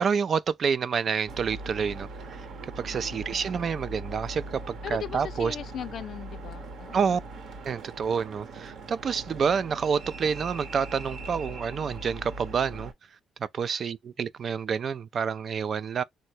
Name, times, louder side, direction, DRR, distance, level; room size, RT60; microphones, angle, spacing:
voice 1, 0.0-2.4 2.8-5.6 6.9-7.2 7.7-12.9 13.5-16.0, right 6 dB, 50° right, 0.3 m, -28 dB
sound 1, 1.3-12.9, right 2 dB, 75° right, 0.8 m, -40 dB
voice 2, 4.8-7.2, left 9 dB, 65° left, 0.3 m, -38 dB
3.3 x 2.1 x 2.6 m
cardioid pair, 90°, 0 cm